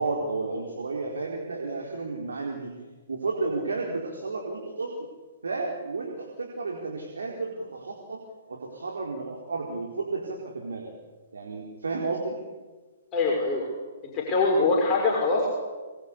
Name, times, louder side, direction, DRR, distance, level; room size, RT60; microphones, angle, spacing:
voice 1, 0.0-2.8 3.1-5.1 5.4-10.9 11.3-12.4, right 3 dB, 75° right, 0 dB, 4.3 m, -32 dB
voice 2, 13.1-13.7 14.0-15.5, left 3 dB, 25° left, -2 dB, 5.9 m, -23 dB
26.0 x 21.5 x 8.5 m, 1.4 s
figure-of-eight pair, 125°, 0 cm